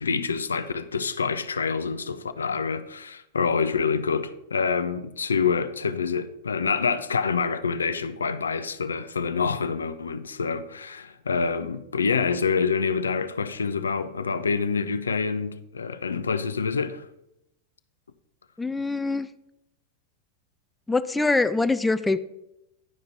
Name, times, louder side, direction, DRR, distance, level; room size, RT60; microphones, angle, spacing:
voice 1, 0.0-17.1, left 5 dB, 70° left, 0.5 m, -26 dB
voice 2, 18.6-19.3 20.9-22.2, left 3 dB, 10° left, 0.4 m, -24 dB
11.0 x 5.0 x 4.3 m
figure-of-eight pair, 90°, 0 cm